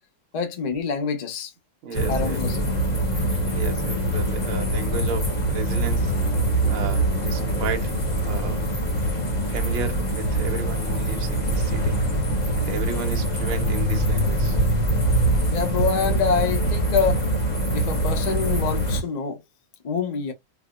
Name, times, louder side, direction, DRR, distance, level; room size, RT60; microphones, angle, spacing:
voice 1, 0.3-1.5 2.1-2.8 15.5-17.3 17.7-19.4 19.8-20.3, left 5 dB, 80° left, 0.3 m, -26 dB
voice 2, 1.8-2.4 3.5-6.1 6.6-8.6 9.5-12.0 12.6-14.6, right 5 dB, 80° right, 1.8 m, -33 dB
sound 1, 1.9-19.0, right 1 dB, 30° left, 0.8 m, -23 dB
4.7 x 2.2 x 2.3 m
omnidirectional pair, 2.3 m